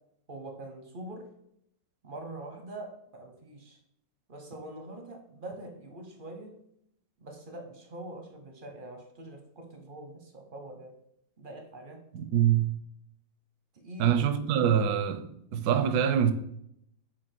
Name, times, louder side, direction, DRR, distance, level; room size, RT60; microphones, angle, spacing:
voice 1, 0.3-1.3 2.0-3.8 4.3-6.6 7.2-10.9 11.4-12.0 13.7-14.2, right 1 dB, 45° right, 0.7 m, -44 dB
voice 2, 12.1-12.7 14.0-15.2 15.5-16.3, right 9 dB, 70° right, 1.0 m, -24 dB
4.9 x 4.2 x 5.9 m
omnidirectional pair, 1.9 m